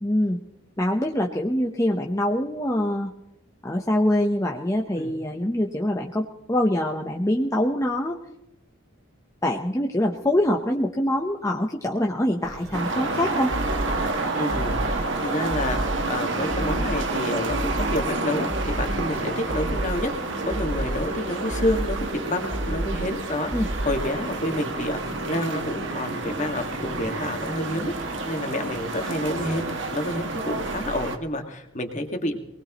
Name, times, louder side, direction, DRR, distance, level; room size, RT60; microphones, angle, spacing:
voice 1, 0.0-0.4 0.8-3.1 3.6-8.2 9.4-13.5 23.5-23.7, left 1 dB, 15° left, 1 dB, 0.9 m, -24 dB
sound 1, 12.4-31.2, right 1 dB, 85° right, 2.2 m, -38 dB
sound 2, 12.7-31.2, right 3 dB, 55° right, 1.5 m, -30 dB
sound 3, 13.5-14.1 14.5-15.1 15.5-16.1 16.5-17.1 17.5-18.1 18.5-19.1 19.5-20.1 20.5-21.1 21.5-22.1 22.5-23.1 23.5-24.2, right 1 dB, 35° right, 1.1 m, -30 dB
voice 2, 14.3-15.8 16.1-20.1 20.4-32.4, left 1 dB, 35° left, 4 dB, 1.9 m, -29 dB
24.0 x 19.5 x 3.1 m, 0.89 s
head